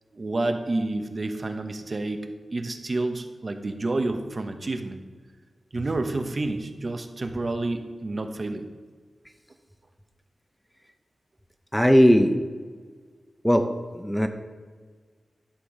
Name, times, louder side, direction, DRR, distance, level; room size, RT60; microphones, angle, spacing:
voice 1, 0.1-2.2 2.5-5.0 5.7-8.7, right 2 dB, 40° right, 6 dB, 0.8 m, -29 dB
voice 2, 11.7-12.3 13.4-13.7 13.9-14.3, equal, 5° left, 6 dB, 0.6 m, -18 dB
11.5 x 3.9 x 7.2 m, 1.5 s
wide cardioid pair, 120°, 0 cm